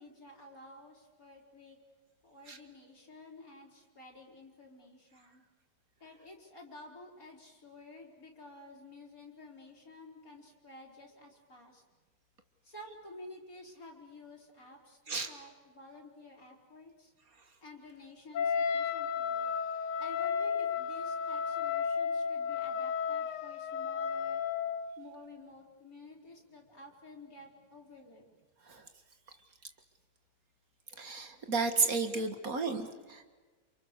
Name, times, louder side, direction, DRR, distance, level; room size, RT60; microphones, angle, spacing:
voice 1, 0.0-1.8 2.2-5.4 6.0-11.8 12.6-17.1 17.6-19.5 20.0-24.4 25.0-28.3, left 2 dB, 55° left, 0 dB, 4.7 m, -52 dB
Wind instrument woodwind instrument, 18.3-25.0, left 6 dB, 80° left, 1.8 m, -33 dB
voice 2, 31.0-33.2, right 4 dB, 55° right, 7 dB, 2.2 m, -32 dB
29.0 x 28.0 x 6.7 m, 1.3 s
omnidirectional pair, 1.8 m